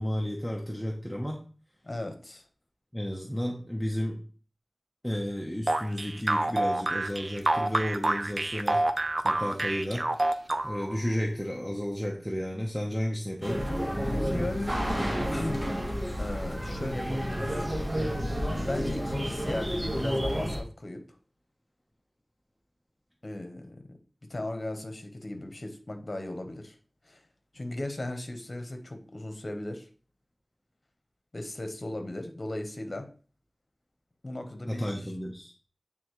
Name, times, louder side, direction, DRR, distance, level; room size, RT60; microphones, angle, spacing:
voice 1, 0.0-1.4 2.9-4.2 5.0-8.8 9.2-10.1 10.6-13.6 34.7-35.5, equal, 5° left, -1 dB, 1.0 m, -32 dB
voice 2, 1.8-2.4 14.3-14.8 15.3-15.7 16.2-17.7 18.6-21.1 23.2-24.0 24.3-26.7 27.0-27.2 27.5-29.9 31.3-33.1 34.2-35.1, left 1 dB, 50° left, 6 dB, 1.1 m, -36 dB
sound 1, 5.7-11.0, right 2 dB, 50° right, 0.5 m, -27 dB
sound 2, 13.4-20.6, equal, 30° right, 1.4 m, -30 dB
8.7 x 3.6 x 3.1 m, 0.40 s
wide cardioid pair, 50°, 0 cm